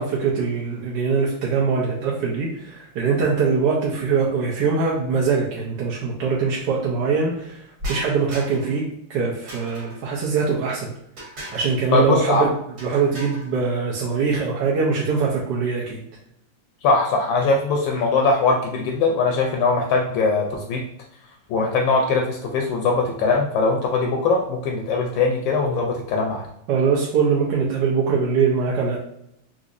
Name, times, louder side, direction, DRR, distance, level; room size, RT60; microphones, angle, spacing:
voice 1, 0.0-8.8 9.1-10.9 11.5-12.5 12.8-16.0 26.7-29.0, right 5 dB, 70° right, -4 dB, 1.2 m, -22 dB
sound 1, 7.8-8.8 9.5-10.1 11.2-11.8 12.8-13.5, equal, 55° right, 1.7 m, -36 dB
voice 2, 11.9-12.5 16.8-20.8 21.5-26.5, left 3 dB, 75° left, 1 dB, 1.2 m, -21 dB
4.0 x 2.6 x 2.5 m, 0.75 s
omnidirectional pair, 2.2 m